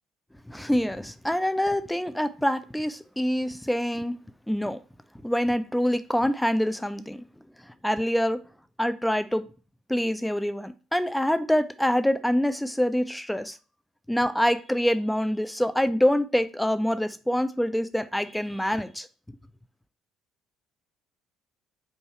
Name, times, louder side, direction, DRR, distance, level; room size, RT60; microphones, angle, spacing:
voice 1, 0.5-4.8 5.2-7.2 7.6-8.4 8.8-9.4 9.9-13.6 14.1-19.1, equal, 5° left, 0.4 m, -25 dB
4.6 x 2.7 x 4.2 m
figure-of-eight pair, 50°, 0 cm